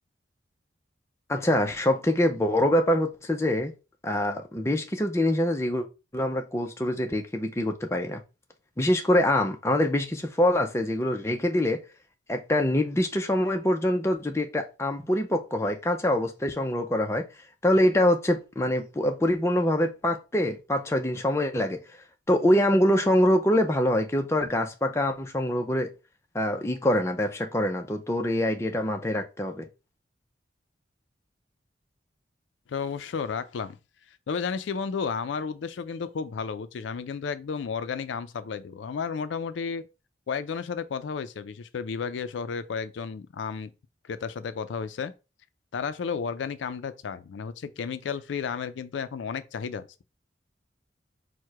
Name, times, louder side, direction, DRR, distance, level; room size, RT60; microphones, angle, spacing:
voice 1, 1.3-3.7 4.0-5.9 6.1-8.2 8.8-11.8 12.3-17.3 17.6-21.8 22.3-25.9 26.3-29.7, left 1 dB, 15° left, 0.5 m, -24 dB
voice 2, 32.7-33.8 34.3-39.9 40.3-43.7 44.0-45.1 45.7-50.0, left 6 dB, 80° left, 0.4 m, -32 dB
4.5 x 2.1 x 4.6 m
head